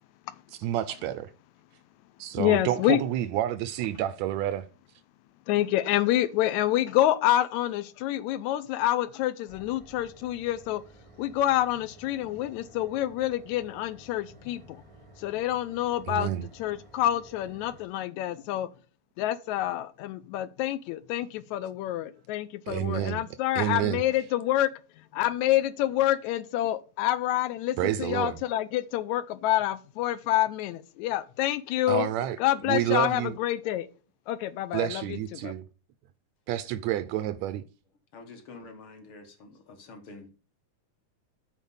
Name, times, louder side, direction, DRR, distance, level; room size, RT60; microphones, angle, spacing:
voice 1, 0.6-1.3 2.2-4.7 16.1-16.4 22.7-23.2 23.5-24.0 27.8-28.4 31.9-32.4 32.7-33.4 34.7-35.6 36.5-37.6, right 12 dB, 80° right, 1.7 m, -29 dB
voice 2, 2.4-3.0 5.5-10.8 11.2-14.8 15.2-18.7 19.2-24.7 25.0-32.1 32.4-33.9 34.3-35.2 35.4-35.5, left 13 dB, 80° left, 1.9 m, -27 dB
sound 1, 9.5-17.8, right 2 dB, 35° right, 0.5 m, -54 dB
voice 3, 38.1-40.3, left 3 dB, 55° left, 1.8 m, -47 dB
8.2 x 4.4 x 7.0 m
omnidirectional pair, 3.5 m